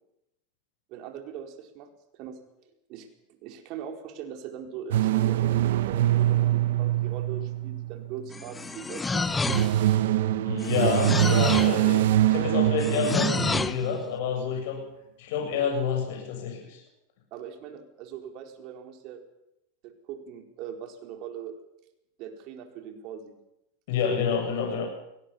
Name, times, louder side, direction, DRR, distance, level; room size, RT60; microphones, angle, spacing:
voice 1, 0.9-2.4 2.9-9.3 17.3-19.2 19.8-21.5 22.2-23.3 24.6-24.7, right 8 dB, 50° right, 4 dB, 4.4 m, -41 dB
sound 1, 4.9-8.3 9.2-14.0, right 13 dB, 75° right, 1.3 m, -24 dB
sound 2, 8.3-9.9 10.6-11.8 12.8-13.8, left 4 dB, 15° left, 1.0 m, -29 dB
voice 2, 10.4-14.8 15.2-16.8 23.9-24.9, left 6 dB, 65° left, 2 dB, 7.6 m, -28 dB
23.0 x 18.0 x 7.1 m, 0.85 s
hypercardioid pair, 110°, 0 cm